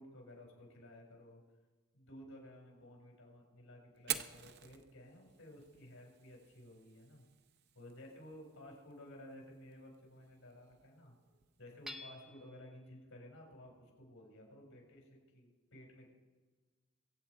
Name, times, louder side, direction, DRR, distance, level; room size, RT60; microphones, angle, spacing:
voice 1, 0.0-1.4 1.9-7.3 7.7-11.1 11.6-16.1, left 1 dB, 80° left, 0 dB, 4.8 m, -55 dB
Fire, 3.9-11.9, right 10 dB, 50° right, 0.7 m, -49 dB
Hammer / Chink clink, 11.9-12.7, left 1 dB, 5° right, 0.8 m, -49 dB
23.5 x 8.0 x 4.7 m, 1.3 s
head